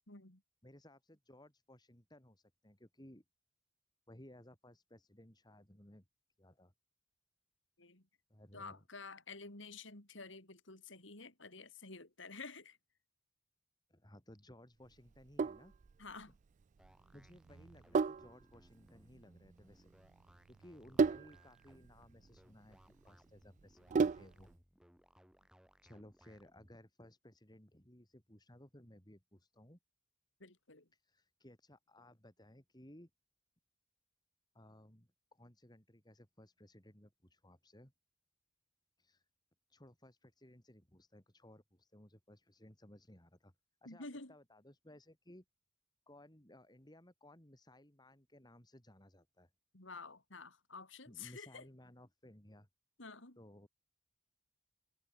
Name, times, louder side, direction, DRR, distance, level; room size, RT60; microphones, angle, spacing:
voice 1, 0.1-0.4 7.8-8.1 8.5-12.8 16.0-16.4 30.4-30.9 43.9-44.3 49.7-51.7 53.0-53.4, left 4 dB, 65° left, 3.8 m, -50 dB
voice 2, 0.6-3.2 4.1-6.0 6.4-6.7 8.3-8.8 13.9-15.7 17.1-19.9 20.5-24.5 25.8-29.8 30.9-33.1 34.5-37.9 39.0-39.2 39.7-43.5 43.8-45.4 46.1-49.5 51.1-52.7 53.4-53.7, left 1 dB, 20° left, 3.9 m, -60 dB
Sink (filling or washing), 15.1-24.5, right 5 dB, 40° right, 0.3 m, -37 dB
sound 1, 16.8-26.8, equal, 5° right, 4.9 m, -67 dB
head